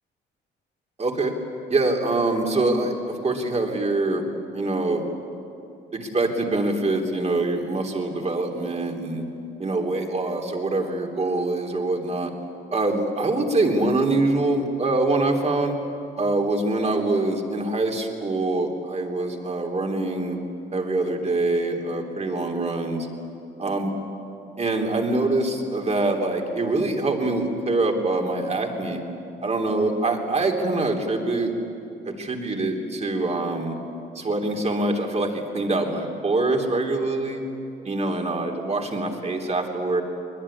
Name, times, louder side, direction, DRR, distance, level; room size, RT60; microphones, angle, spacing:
voice 1, 1.0-1.3 1.7-4.2 4.5-5.1 5.9-9.2 9.6-12.3 12.7-15.8 16.2-20.4 20.7-23.1 23.6-23.9 24.6-29.0 29.4-31.5 32.2-33.8 34.1-37.4 37.8-40.0, right 2 dB, 35° right, 2 dB, 3.3 m, -24 dB
21.5 x 21.0 x 10.0 m, 2.7 s
cardioid pair, 90°, 20 cm